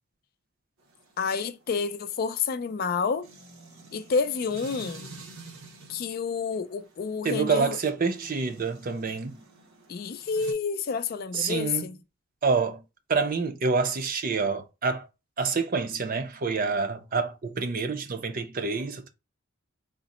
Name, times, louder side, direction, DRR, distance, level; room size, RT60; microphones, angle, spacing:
sound 1, 0.8-10.5, right 2 dB, 80° right, 0.8 m, -49 dB
voice 1, 1.2-3.3 3.9-5.1 5.9-7.8 9.9-12.0, left 5 dB, 45° left, 0.3 m, -29 dB
voice 2, 7.2-9.4 11.3-11.9 12.4-12.8 13.1-15.1 15.4-19.1, right 4 dB, 40° right, 0.5 m, -27 dB
3.7 x 2.0 x 3.9 m
head